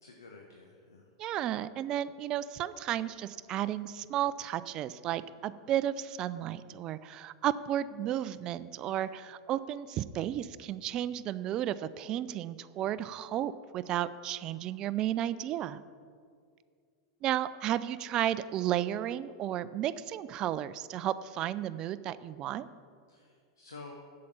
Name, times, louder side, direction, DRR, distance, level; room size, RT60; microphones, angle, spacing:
voice 1, 0.0-1.1 23.1-24.1, left 3 dB, 75° left, 2 dB, 1.1 m, -50 dB
voice 2, 1.2-15.8 17.2-22.7, right 11 dB, 35° right, 15 dB, 0.4 m, -33 dB
8.5 x 7.5 x 8.4 m, 2.2 s
figure-of-eight pair, 85°, 2 cm